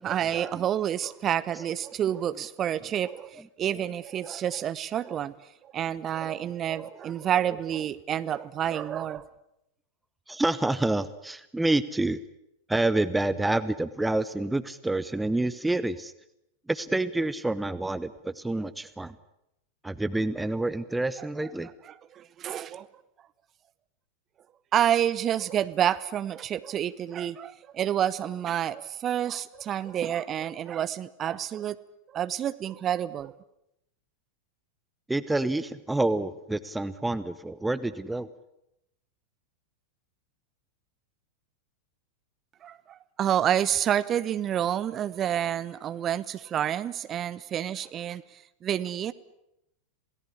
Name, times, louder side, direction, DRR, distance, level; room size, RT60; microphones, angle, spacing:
voice 1, 0.0-5.3 5.6-9.2 22.1-22.9 24.7-31.8 32.1-33.3 42.6-48.2 48.6-49.1, right 10 dB, 30° right, 1.1 m, -29 dB
voice 2, 10.3-12.2 12.7-16.1 16.7-19.2 19.8-21.7 35.1-38.3, right 2 dB, 5° right, 0.9 m, -28 dB
27.5 x 18.0 x 9.9 m
figure-of-eight pair, 90°, 0 cm